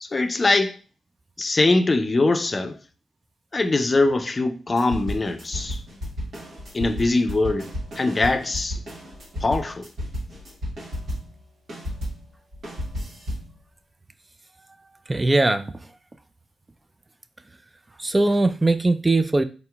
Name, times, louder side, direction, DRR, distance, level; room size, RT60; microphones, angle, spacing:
voice 1, 0.0-0.8 1.4-2.8 3.5-5.8 6.7-8.8 9.4-9.9, left 2 dB, 35° left, 0.4 m, -22 dB
sound 1, 4.8-11.4 11.7-13.5, equal, 70° right, 1.3 m, -33 dB
voice 2, 15.1-15.7 18.0-19.4, right 2 dB, 25° right, 0.3 m, -20 dB
4.0 x 2.8 x 2.3 m
supercardioid pair, 55°, 0 cm